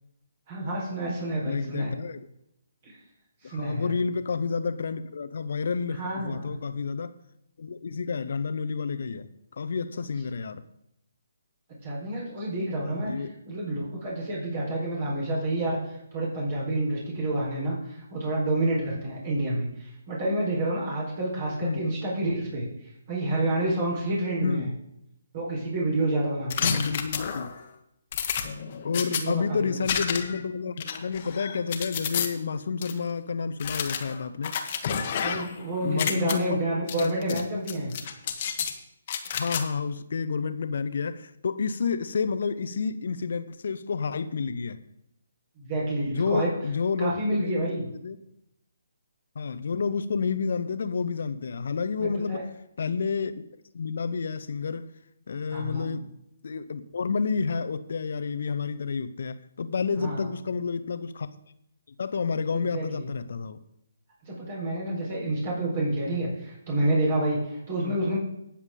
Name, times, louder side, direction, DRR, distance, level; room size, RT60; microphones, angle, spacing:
voice 1, 0.5-1.9 2.8-2.9 3.4-3.9 6.0-6.5 11.8-13.1 13.5-22.7 23.1-24.7 25.3-26.7 28.9-29.7 35.2-37.9 45.6-46.5 47.0-47.9 52.0-52.4 55.5-55.9 60.0-60.3 62.5-63.1 64.3-68.2, right 1 dB, 40° right, -4 dB, 4.3 m, -29 dB
voice 2, 1.5-2.3 3.4-7.2 7.6-10.6 13.0-13.3 21.6-21.8 24.4-24.7 26.6-27.5 28.8-34.5 35.8-36.6 37.0-37.5 39.3-44.8 46.1-48.2 49.3-52.5 52.8-53.4 53.7-54.9 55.3-56.1 56.4-61.3 62.0-63.6 67.8-68.0, left 5 dB, 55° left, 13 dB, 0.8 m, -30 dB
sound 1, 26.5-27.6 28.1-29.2 29.9-30.4 30.8-32.3 32.8-32.9 33.6-35.6 35.9-36.3 36.9-37.4 37.7-38.7 39.1-39.6, left 7 dB, 40° left, 1.3 m, -30 dB
18.5 x 7.2 x 3.8 m, 0.80 s
figure-of-eight pair, 140°, 0 cm